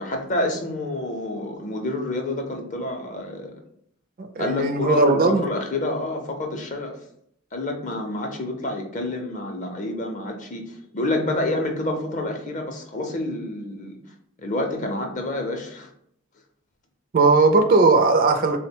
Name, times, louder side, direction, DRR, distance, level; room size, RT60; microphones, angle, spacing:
voice 1, 0.0-3.5 4.4-7.0 7.5-14.0 14.4-15.9, left 2 dB, 35° left, 3 dB, 0.5 m, -28 dB
voice 2, 4.2-5.4 17.1-18.6, right 3 dB, 40° right, 6 dB, 0.4 m, -18 dB
3.5 x 2.1 x 4.2 m, 0.70 s
head